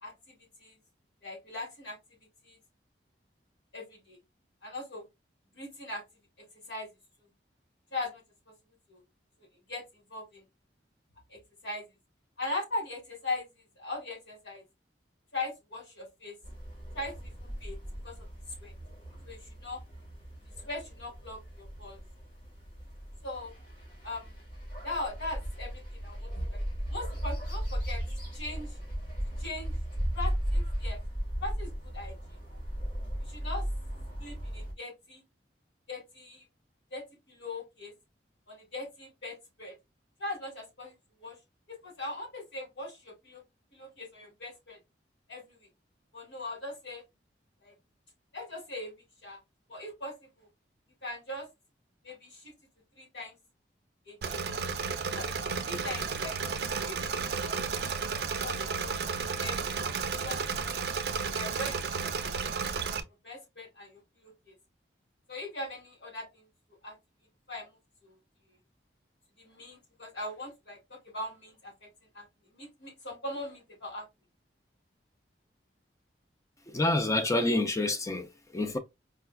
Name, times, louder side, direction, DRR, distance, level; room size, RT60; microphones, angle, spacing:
voice 1, 0.0-0.8 1.2-2.0 2.4-2.6 3.7-4.2 4.6-5.1 5.5-6.0 6.7-6.9 7.9-8.2 8.9-9.0 9.7-9.8 10.1-10.4 11.3-11.9 12.4-14.6 15.3-16.4 16.9-17.8 18.0-18.1 18.6-18.7 19.3-19.8 20.6-22.0 23.2-23.5 24.0-24.3 24.8-26.6 26.9-28.0 28.3-28.8 29.4-29.7 30.1-31.0 31.4-32.1 33.2-33.6 34.2-35.2 35.9-36.4 36.9-37.9 38.5-39.7 40.2-40.9 41.2-41.4 41.7-43.4 43.7-44.8 45.3-45.6 46.1-47.0 47.6-47.7 48.3-48.9 49.2-49.4 49.7-50.5 51.0-51.5 52.0-52.5 53.0-53.3 54.1-54.4 55.1-55.3 55.6-56.4 56.9-59.0 59.4-59.6 60.2-60.9 61.2-62.6 63.2-64.5 65.3-66.4 66.8-66.9 67.5-67.7 68.0-68.1 69.4-71.9 72.1-72.2 72.5-74.1, left 2 dB, 85° left, 2.2 m, -40 dB
sound 1, 16.4-34.7, equal, 50° left, 1.5 m, -36 dB
Engine / Mechanisms, 54.2-63.0, right 5 dB, 60° right, 0.4 m, -33 dB
voice 2, 76.7-78.8, left 2 dB, 15° left, 0.4 m, -28 dB
4.7 x 2.2 x 2.2 m
head